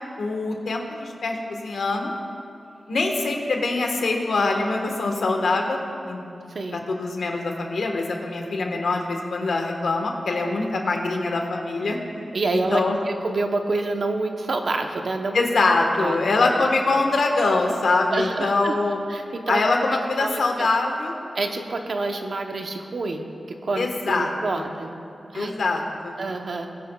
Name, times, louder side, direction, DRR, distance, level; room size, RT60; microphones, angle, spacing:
voice 1, 0.2-2.1 2.9-5.8 6.1-6.2 6.7-12.0 12.7-13.0 15.3-19.0 19.5-21.1 23.8-24.7 25.3-26.2, left 3 dB, 75° left, 2 dB, 1.3 m, -23 dB
voice 2, 12.3-15.4 16.0-16.4 18.1-18.7 19.1-19.6 20.2-20.7 21.3-23.2 23.6-24.9 25.3-25.5 26.2-26.7, right 3 dB, 60° right, 4 dB, 0.9 m, -27 dB
21.0 x 9.8 x 2.3 m, 2.6 s
wide cardioid pair, 100°, 0 cm